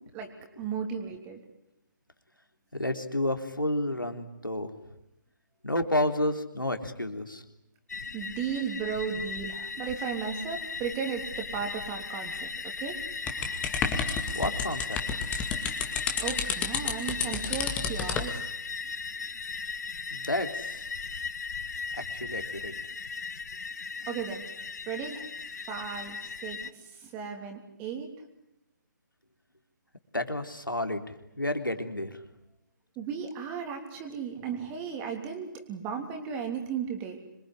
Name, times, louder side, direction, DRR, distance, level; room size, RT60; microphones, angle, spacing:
voice 1, 0.6-1.4 8.1-13.0 16.2-18.4 24.1-24.4 24.9-25.2 25.7-28.1 32.9-37.2, right 7 dB, 15° right, 4 dB, 3.3 m, -35 dB
voice 2, 2.8-4.7 5.6-7.4 14.3-15.0 20.1-20.8 22.0-22.7 30.1-31.0 31.4-32.2, left 1 dB, 90° left, 6 dB, 3.7 m, -30 dB
sound 1, 7.9-26.7, left 5 dB, 55° left, 1.2 m, -37 dB
sound 2, 13.3-18.3, left 6 dB, 10° left, 2.2 m, -31 dB
26.5 x 23.0 x 10.0 m, 0.87 s
figure-of-eight pair, 145°, 11 cm